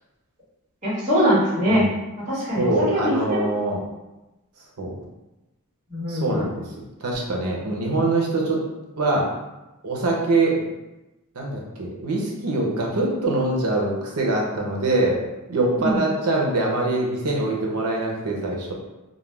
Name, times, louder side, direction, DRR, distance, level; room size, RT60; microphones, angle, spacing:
voice 1, 0.8-1.8 2.2-3.4 5.9-6.4 15.8-16.0, equal, 35° right, -10 dB, 1.3 m, -22 dB
voice 2, 2.6-3.8 4.8-5.0 6.1-6.6 7.0-8.6 9.0-9.2 9.8-10.7 11.3-15.2 15.5-18.7, right 2 dB, 80° right, -2 dB, 0.7 m, -23 dB
2.4 x 2.1 x 3.2 m, 1.0 s
head